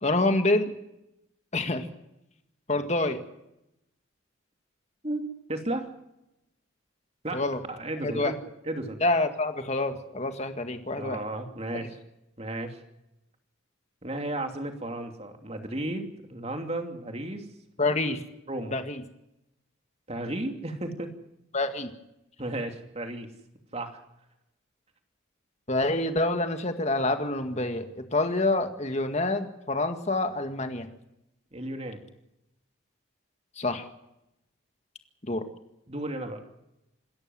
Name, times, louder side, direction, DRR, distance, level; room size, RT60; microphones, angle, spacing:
voice 1, 0.0-0.7 1.5-1.9 2.7-3.2 7.3-7.6 8.0-8.3 9.0-11.2 17.8-18.2 18.7-19.0 21.5-21.9 25.7-30.9 33.6-33.9 35.3-35.4, left 2 dB, 35° left, 7 dB, 1.9 m, -27 dB
voice 2, 5.0-5.9 7.2-7.4 7.7-8.4 8.7-9.0 11.0-11.9 12.4-12.8 14.0-17.5 18.5-18.7 20.1-21.1 22.4-23.3 23.7-24.0 31.5-32.0 35.9-36.5, right 1 dB, 30° right, 5 dB, 2.8 m, -34 dB
27.0 x 13.5 x 7.8 m, 0.87 s
head